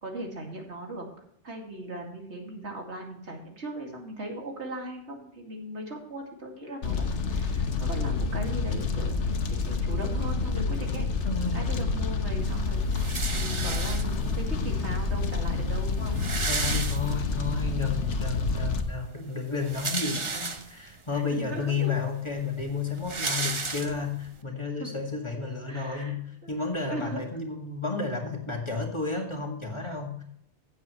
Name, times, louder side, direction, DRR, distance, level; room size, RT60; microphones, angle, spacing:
voice 1, 0.0-1.1 1.4-11.1 11.5-12.8 13.3-16.2 21.1-21.9 24.8-24.9 25.7-26.1 26.4-26.5 26.9-27.2 29.8-30.0, right 1 dB, 75° right, 1 dB, 2.5 m, -38 dB
Fire, 6.8-18.8, left 4 dB, 80° left, 1.4 m, -28 dB
voice 2, 11.2-11.7 16.5-30.2, left 4 dB, 25° left, 1 dB, 2.0 m, -32 dB
sound 1, 12.9-14.4 15.2-15.3 15.5-15.6 15.9-17.5 17.9-18.0 19.4-20.9 21.6-21.7 21.9-24.3, right 3 dB, 30° right, 0.8 m, -33 dB
16.0 x 7.9 x 3.1 m, 0.70 s
omnidirectional pair, 1.2 m